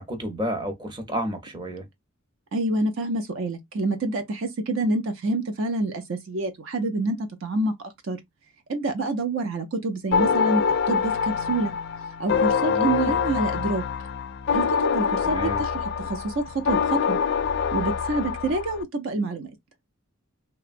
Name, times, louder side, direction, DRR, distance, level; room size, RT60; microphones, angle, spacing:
voice 1, 0.0-1.8 12.6-13.2 15.2-15.6, equal, 20° right, 0.6 m, -31 dB
voice 2, 2.5-8.2 8.7-11.7 12.2-13.8 14.5-17.2 17.7-19.5, right 2 dB, 65° right, 0.5 m, -27 dB
sound 1, 10.1-18.8, left 6 dB, 55° left, 0.3 m, -25 dB
2.8 x 2.2 x 2.5 m
head